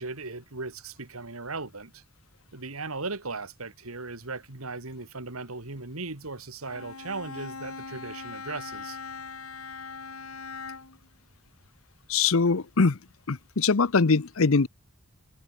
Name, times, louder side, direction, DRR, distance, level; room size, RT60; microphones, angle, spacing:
voice 1, 0.0-2.0 2.5-9.0, right 3 dB, 85° right, 2.6 m, -37 dB
Bowed string instrument, 6.6-11.1, left 4 dB, 85° left, 3.3 m, -40 dB
voice 2, 12.1-13.0 13.3-14.7, left 4 dB, 70° left, 0.8 m, -22 dB
head